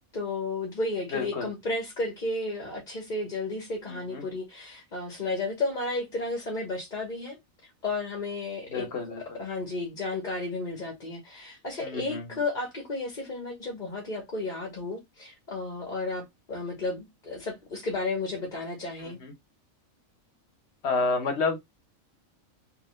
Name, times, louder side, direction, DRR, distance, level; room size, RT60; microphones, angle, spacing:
voice 1, 0.1-7.4 7.6-8.9 9.2-19.2, left 2 dB, 35° left, 1.1 m, -33 dB
voice 2, 1.1-1.5 3.9-4.2 8.7-9.4 11.8-12.2 19.0-19.3 20.8-21.6, left 4 dB, 55° left, 1.2 m, -30 dB
3.3 x 3.2 x 3.1 m
omnidirectional pair, 1.4 m